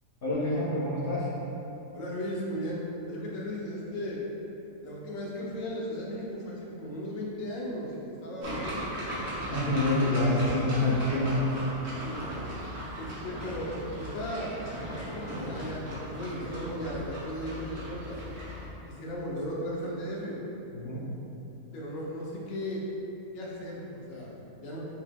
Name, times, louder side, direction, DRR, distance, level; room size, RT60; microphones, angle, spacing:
voice 1, 0.2-1.3 9.5-11.7 20.8-21.1, left 1 dB, 45° left, -8 dB, 0.8 m, -27 dB
voice 2, 1.9-2.8 3.1-4.2 4.8-8.9 12.0-12.4 13.0-14.5 14.9-18.2 18.8-20.4 21.7-22.8 23.3-24.8, equal, 65° left, -4 dB, 1.1 m, -36 dB
sound 1, 8.4-18.7, equal, 50° right, 1.3 m, -38 dB
4.6 x 4.1 x 2.2 m, 3.0 s
omnidirectional pair, 1.6 m